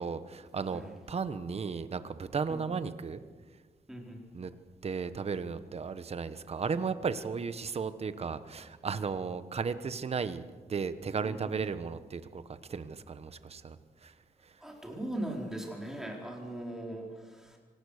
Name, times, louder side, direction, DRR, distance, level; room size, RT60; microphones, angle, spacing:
voice 1, 0.0-0.8 1.1-3.2 4.3-4.5 4.8-10.4 10.7-13.8 14.0-14.1 14.4-14.6, right 5 dB, 40° right, 12 dB, 1.1 m, -35 dB
voice 2, 3.9-4.2 11.2-11.6 14.6-17.6, right 1 dB, 5° right, -1 dB, 4.3 m, -39 dB
25.5 x 19.0 x 6.5 m, 1.4 s
wide cardioid pair, 150°, 16 cm